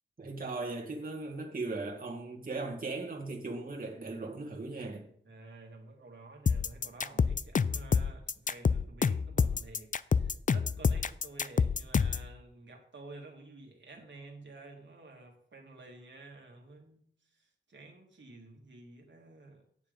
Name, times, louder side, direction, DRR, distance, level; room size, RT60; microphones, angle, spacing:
voice 1, 0.2-5.1, right 3 dB, 45° right, 1.8 m, -38 dB
voice 2, 5.3-19.6, right 2 dB, 65° right, 1.9 m, -51 dB
sound 1, 6.5-12.3, left 6 dB, 40° left, 0.4 m, -27 dB
9.3 x 7.3 x 5.2 m
wide cardioid pair, 80°, 20 cm